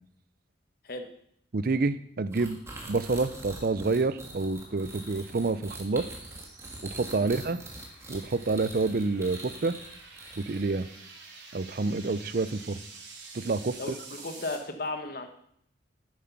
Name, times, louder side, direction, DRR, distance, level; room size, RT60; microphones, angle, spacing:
voice 1, 1.5-2.6 2.9-6.1 6.9-7.6 8.1-9.8 10.4-10.9 11.5-12.8 13.3-13.8, right 3 dB, 50° right, 14 dB, 0.5 m, -28 dB
sound 1, 2.3-10.8, right 2 dB, 15° right, 1.6 m, -44 dB
sound 2, 3.4-14.6, right 4 dB, 85° right, 2.9 m, -50 dB
voice 2, 13.8-15.3, left 2 dB, 55° left, 6 dB, 1.1 m, -35 dB
9.6 x 7.7 x 5.9 m, 0.69 s
head